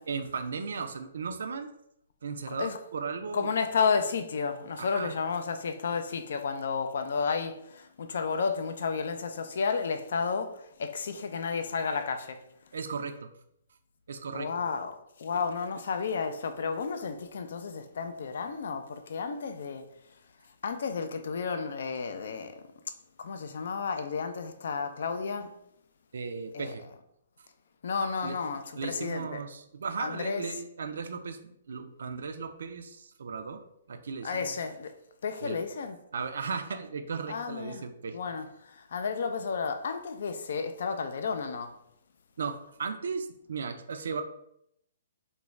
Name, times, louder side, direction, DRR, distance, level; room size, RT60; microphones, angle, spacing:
voice 1, 0.0-1.7 2.2-3.5 4.8-5.1 12.7-13.3 14.1-14.5 15.3-15.4 26.1-26.8 28.2-28.4 28.8-34.5 35.4-35.6 36.1-38.2 42.4-44.2, right 5 dB, 70° right, 0.3 m, -36 dB
voice 2, 2.5-2.8 3.3-12.4 14.3-19.9 20.6-22.7 23.2-25.5 26.5-26.7 27.8-29.4 30.0-30.4 34.2-34.9 35.2-36.0 37.3-37.8 38.1-41.8, left 5 dB, 65° left, 0.3 m, -32 dB
2.4 x 2.1 x 3.1 m
hypercardioid pair, 135°, 0 cm